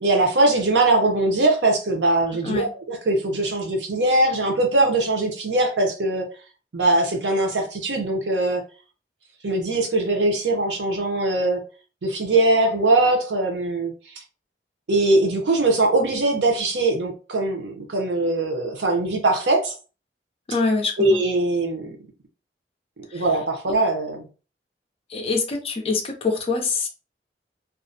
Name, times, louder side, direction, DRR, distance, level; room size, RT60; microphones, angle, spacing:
voice 1, 0.0-6.2 6.7-8.6 9.4-11.6 12.0-13.9 14.9-19.7 21.0-21.9 23.1-24.2, right 2 dB, 80° right, 0.6 m, -21 dB
voice 2, 20.5-21.2 23.1-23.2 25.1-26.9, left 3 dB, 35° left, 0.4 m, -24 dB
2.4 x 2.0 x 2.5 m
head